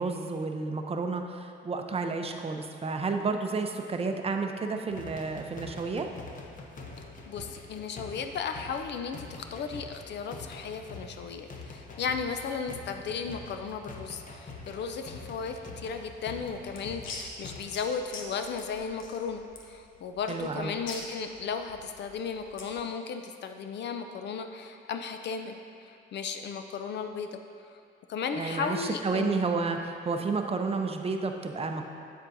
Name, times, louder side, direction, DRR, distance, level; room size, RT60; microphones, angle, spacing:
voice 1, 0.0-6.1 20.3-20.7 28.4-31.8, right 4 dB, 30° right, 4 dB, 0.6 m, -31 dB
sound 1, 4.9-17.6, left 3 dB, 40° left, 0.8 m, -45 dB
voice 2, 7.3-27.8 28.1-29.4, left 6 dB, 60° left, 6 dB, 0.4 m, -35 dB
sound 2, 16.4-22.8, left 3 dB, 80° left, 0.9 m, -44 dB
8.1 x 7.2 x 2.6 m, 2.4 s
cardioid pair, 90°, 20 cm